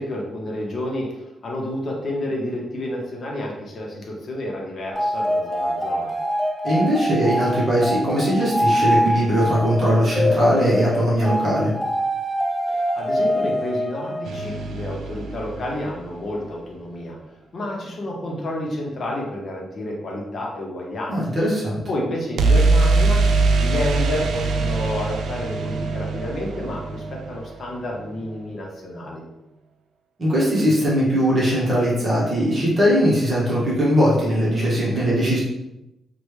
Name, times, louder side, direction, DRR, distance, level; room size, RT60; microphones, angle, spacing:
voice 1, 0.0-6.1 12.7-17.2 17.5-21.2 21.9-23.2 23.6-29.2, left 1 dB, 40° left, -2 dB, 0.7 m, -30 dB
sound 1, 4.9-14.7, equal, 10° left, 0.4 m, -24 dB
voice 2, 6.6-11.7 21.1-21.8 30.2-35.4, equal, 35° right, -6 dB, 0.9 m, -20 dB
sound 2, 14.3-16.3 22.4-28.2, right 3 dB, 65° right, 0.3 m, -22 dB
3.1 x 2.2 x 3.1 m, 0.91 s
wide cardioid pair, 145°, 0 cm